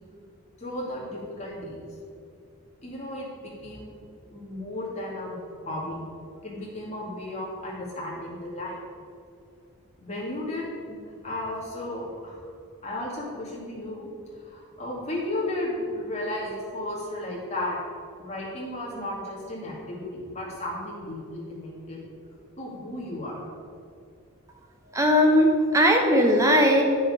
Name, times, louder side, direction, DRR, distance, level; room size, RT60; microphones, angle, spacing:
voice 1, 0.6-1.8 2.8-4.0 4.3-5.4 5.6-6.0 6.4-8.8 10.0-12.4 12.8-14.1 14.4-17.8 18.2-22.0 22.6-23.4, left 1 dB, 30° left, -5 dB, 2.5 m, -34 dB
voice 2, 24.9-26.8, equal, 15° right, 2 dB, 0.8 m, -19 dB
9.4 x 6.9 x 5.1 m, 2.4 s
head